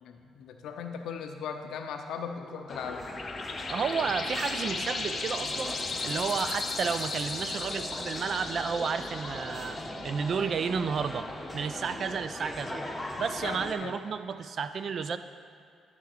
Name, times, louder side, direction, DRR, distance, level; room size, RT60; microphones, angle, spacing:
voice 1, 0.0-3.0 13.2-13.9, left 6 dB, 80° left, 5 dB, 0.7 m, -38 dB
sound 1, 2.4-11.6, left 3 dB, 40° left, 0.8 m, -37 dB
sound 2, 2.7-13.7, left 1 dB, 5° left, 0.8 m, -40 dB
voice 2, 3.7-5.8 6.0-9.8 10.0-11.3 11.5-12.8 13.2-15.2, right 6 dB, 55° right, 10 dB, 0.4 m, -31 dB
10.0 x 3.5 x 6.6 m, 2.4 s
cardioid pair, 90°, 0 cm